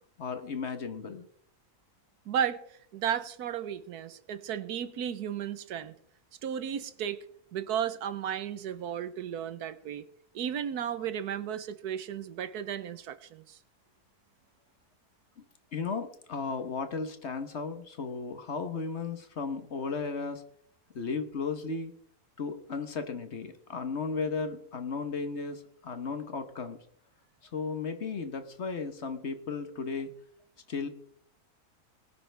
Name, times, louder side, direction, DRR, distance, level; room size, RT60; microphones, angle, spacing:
voice 1, 0.2-1.3 15.4-15.5 15.7-20.4 20.9-21.9 22.4-26.8 27.4-30.1 30.7-30.9, left 4 dB, 50° left, 9 dB, 1.3 m, -35 dB
voice 2, 2.3-2.6 2.9-5.9 6.4-7.2 7.5-10.0 10.3-13.6, right 9 dB, 90° right, 13 dB, 1.4 m, -34 dB
20.5 x 9.8 x 3.4 m, 0.66 s
omnidirectional pair, 1.6 m